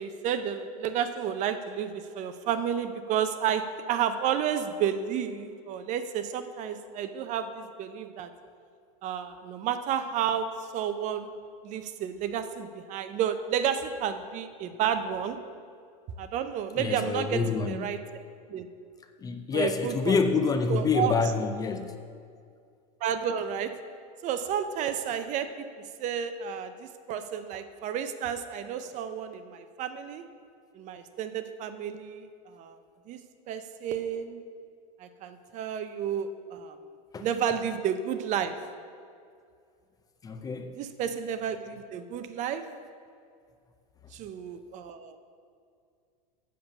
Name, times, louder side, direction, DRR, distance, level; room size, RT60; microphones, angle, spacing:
voice 1, 0.0-8.3 9.0-11.3 11.6-15.4 16.2-18.0 18.5-18.7 19.5-20.2 20.7-21.1 23.0-23.7 24.2-25.7 26.0-30.2 30.7-32.3 32.5-32.8 33.1-33.2 33.5-34.4 35.0-36.8 37.2-38.5 40.8-42.6 44.1-45.2, right 8 dB, 40° right, 10 dB, 0.6 m, -31 dB
voice 2, 16.8-18.0 19.2-22.0 37.1-37.3 40.2-40.8, left 4 dB, 20° left, 7 dB, 0.5 m, -27 dB
7.6 x 6.8 x 7.0 m, 2.3 s
supercardioid pair, 135°, 20 cm